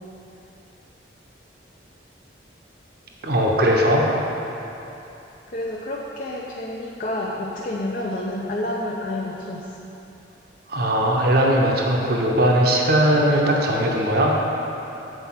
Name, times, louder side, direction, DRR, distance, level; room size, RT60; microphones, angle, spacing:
voice 1, 3.2-4.0 10.7-14.3, equal, 55° right, -1 dB, 0.8 m, -19 dB
voice 2, 5.5-9.7, left 1 dB, 45° left, -3 dB, 0.6 m, -29 dB
8.0 x 4.6 x 5.8 m, 3.0 s
head